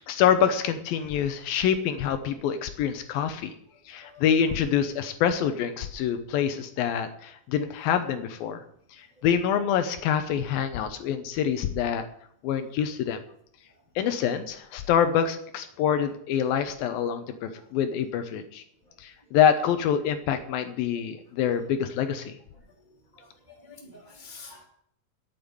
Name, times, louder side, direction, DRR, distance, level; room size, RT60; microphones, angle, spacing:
voice 1, 0.1-3.5 3.9-8.6 9.0-12.0 12.4-13.2 14.0-18.6 19.0-22.3, left 8 dB, 75° left, 9 dB, 2.6 m, -26 dB
voice 2, 23.6-24.7, left 4 dB, 20° right, -1 dB, 1.5 m, -47 dB
8.9 x 8.8 x 9.6 m, 0.68 s
omnidirectional pair, 4.4 m